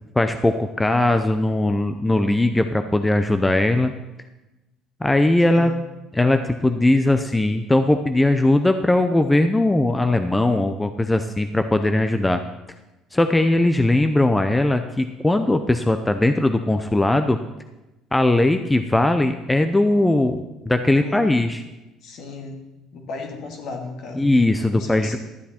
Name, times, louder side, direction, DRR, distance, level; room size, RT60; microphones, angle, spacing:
voice 1, 0.2-3.9 5.0-5.7 6.1-12.4 13.1-17.4 18.1-21.6 24.2-25.2, left 1 dB, 10° left, 8 dB, 0.5 m, -19 dB
voice 2, 5.5-5.8 20.9-21.4 22.0-22.6 22.9-25.2, left 3 dB, 60° left, 3 dB, 2.0 m, -36 dB
12.0 x 8.2 x 4.3 m, 1.0 s
cardioid pair, 110°, 0 cm